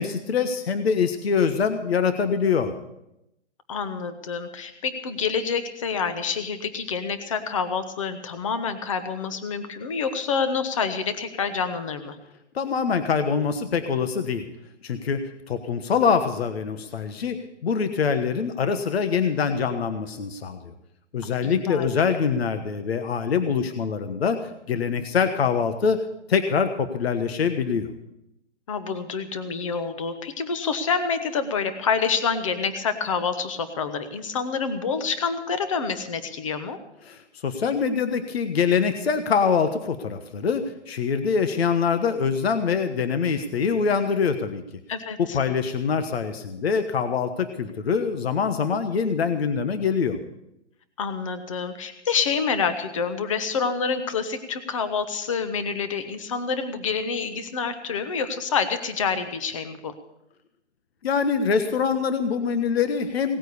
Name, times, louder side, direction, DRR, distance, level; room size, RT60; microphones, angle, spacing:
voice 1, 0.0-2.7 12.5-14.4 14.8-15.2 15.5-20.7 21.1-24.4 24.7-26.0 26.3-27.9 37.1-44.6 45.2-50.2 61.0-63.4, left 6 dB, 60° left, 9 dB, 1.3 m, -24 dB
voice 2, 3.7-12.2 21.2-21.8 28.7-36.8 44.9-45.4 51.0-59.9, left 5 dB, 30° left, 10 dB, 1.1 m, -27 dB
18.0 x 9.0 x 6.9 m, 0.84 s
hypercardioid pair, 180°, 35 cm